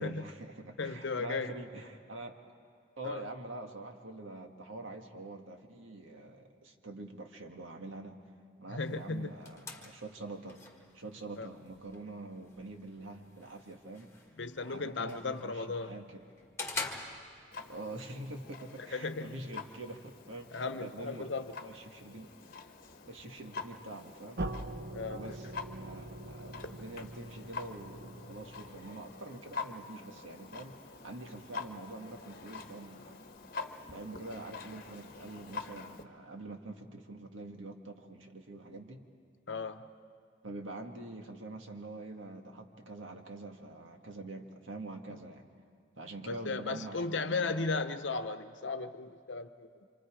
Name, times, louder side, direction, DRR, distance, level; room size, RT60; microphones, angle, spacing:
voice 1, 0.0-2.3 3.0-8.2 8.6-10.6 10.9-14.1 14.6-16.2 17.7-21.3 21.6-22.3 23.1-24.4 25.1-33.3 33.9-39.1 40.4-45.4 46.0-47.8, right 2 dB, 85° right, 3 dB, 1.8 m, -45 dB
voice 2, 0.8-1.5 3.0-3.2 8.7-9.3 11.4-11.5 14.4-16.0 18.8-19.4 20.5-21.6 24.9-25.2 39.5-39.8 46.3-49.9, left 3 dB, 70° left, 9 dB, 0.9 m, -36 dB
sound 1, 8.8-17.8, left 3 dB, 15° left, 1.8 m, -46 dB
Clock, 17.5-36.0, left 4 dB, 50° left, 1.1 m, -46 dB
sound 2, 24.4-29.2, right 1 dB, 55° right, 0.9 m, -43 dB
27.0 x 26.0 x 5.0 m, 2.2 s
head